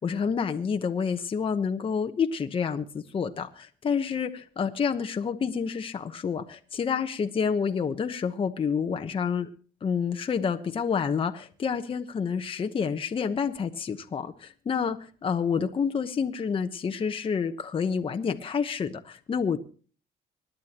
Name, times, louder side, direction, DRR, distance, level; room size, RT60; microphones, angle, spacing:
voice 1, 0.0-9.5 9.8-19.6, left 6 dB, 30° left, 1.0 m, -28 dB
25.0 x 10.5 x 3.0 m
cardioid pair, 110°, 17 cm